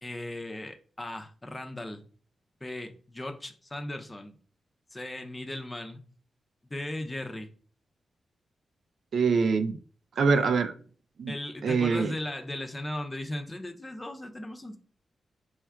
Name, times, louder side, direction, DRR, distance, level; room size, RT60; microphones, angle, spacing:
voice 1, 0.0-2.0 2.6-4.4 4.9-6.0 6.7-7.5 11.3-14.8, left 1 dB, 15° left, 0.5 m, -37 dB
voice 2, 9.1-9.8 10.2-10.7 11.2-11.3 11.6-12.1, right 5 dB, 65° right, 0.4 m, -24 dB
4.3 x 2.4 x 4.4 m
wide cardioid pair, 140°, 0 cm